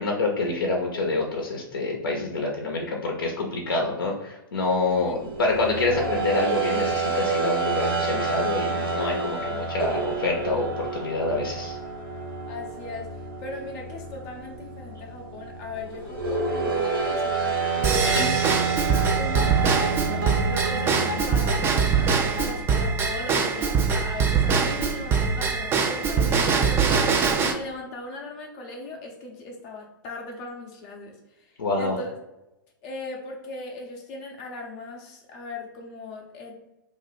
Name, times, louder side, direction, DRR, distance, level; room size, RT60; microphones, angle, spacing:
voice 1, 0.0-11.8 18.0-18.3 31.6-32.0, left 3 dB, 80° left, 0 dB, 0.6 m, -27 dB
sound 1, 4.7-21.1, right 4 dB, 85° right, 0.9 m, -29 dB
voice 2, 12.5-32.1 32.8-36.5, left 2 dB, 40° left, 1 dB, 0.5 m, -38 dB
Drum kit / Drum / Bell, 17.8-27.5, right 5 dB, 20° right, 0.3 m, -23 dB
sound 2, 19.4-24.5, equal, 65° right, 0.6 m, -35 dB
2.5 x 2.1 x 3.9 m, 0.94 s
hypercardioid pair, 115°, 12 cm